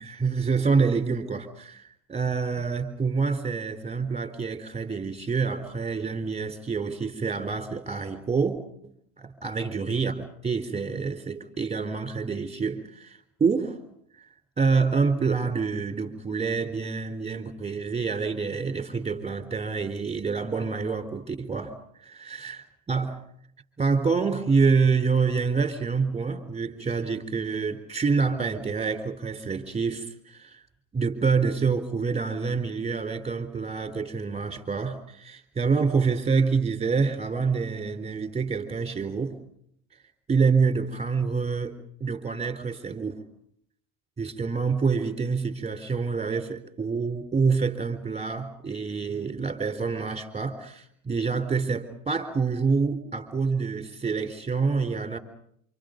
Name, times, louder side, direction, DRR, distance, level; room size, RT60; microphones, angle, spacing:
voice 1, 0.0-8.6 8.8-8.9 9.2-13.8 14.6-21.8 22.0-23.2 23.8-30.6 30.9-39.4 40.3-41.8 42.0-43.2 44.2-55.2, right 5 dB, 15° right, 9 dB, 4.0 m, -27 dB
28.0 x 27.0 x 5.3 m, 0.70 s
supercardioid pair, 105°, 39 cm